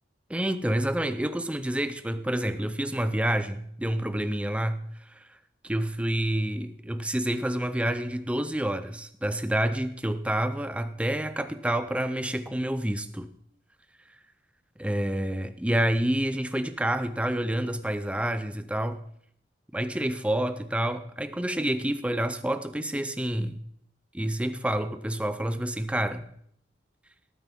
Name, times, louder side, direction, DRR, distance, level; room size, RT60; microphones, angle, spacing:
voice 1, 0.3-5.2 5.6-13.3 14.8-19.0 19.7-23.6 24.1-26.3, right 1 dB, 5° right, 11 dB, 0.5 m, -28 dB
18.0 x 9.0 x 3.7 m, 0.68 s
head